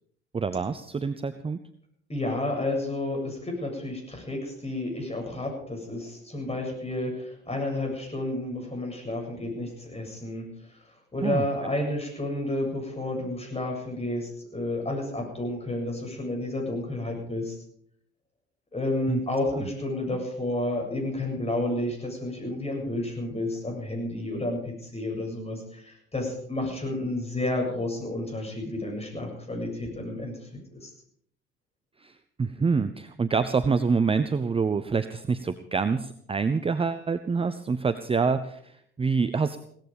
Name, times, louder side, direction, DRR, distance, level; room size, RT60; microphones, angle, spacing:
voice 1, 0.3-1.6 11.2-11.4 19.1-19.2 19.5-19.6 32.0-39.6, right 5 dB, 15° right, 11 dB, 0.8 m, -26 dB
voice 2, 2.1-10.5 11.1-17.6 18.7-30.3 30.8-30.9, left 1 dB, 20° left, 1 dB, 7.8 m, -31 dB
17.0 x 14.5 x 5.2 m, 0.67 s
figure-of-eight pair, 60°, 34 cm